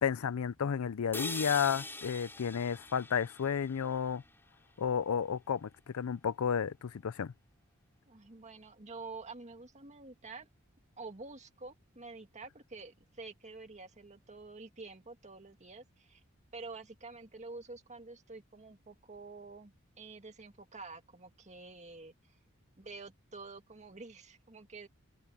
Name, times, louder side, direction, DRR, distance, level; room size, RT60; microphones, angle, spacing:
voice 1, 0.0-4.2 4.8-7.3, left 7 dB, 90° left, 0.5 m, -32 dB
sound 1, 1.1-5.1, left 2 dB, 10° left, 3.2 m, -44 dB
voice 2, 8.1-10.5 11.0-16.2 16.5-22.4 22.8-24.9, right 3 dB, 35° right, 2.0 m, -48 dB
head